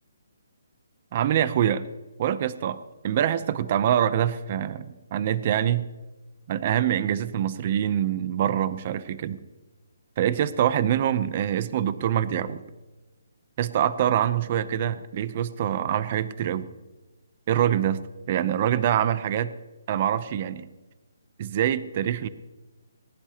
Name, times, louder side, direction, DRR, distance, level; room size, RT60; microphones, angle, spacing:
voice 1, 1.1-1.8 2.2-5.9 6.5-9.4 10.2-12.6 13.6-16.7 17.5-18.0 18.3-19.5 19.9-20.7 21.4-22.3, right 10 dB, 25° right, 14 dB, 0.6 m, -25 dB
20.0 x 19.0 x 2.9 m, 1.1 s
hypercardioid pair, 175°, 0 cm